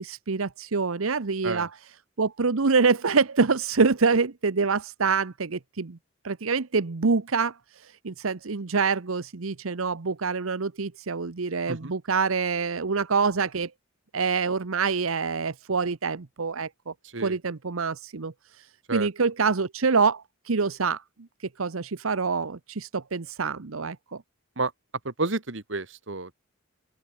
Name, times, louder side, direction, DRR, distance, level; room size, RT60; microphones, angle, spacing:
voice 1, 0.0-1.7 2.2-6.0 6.2-13.7 14.1-16.9 17.2-18.7 18.9-21.0 21.6-24.2, right 4 dB, 90° right, 0.9 m, -26 dB
voice 2, 25.1-26.3, right 3 dB, 65° right, 1.6 m, -30 dB
open air
head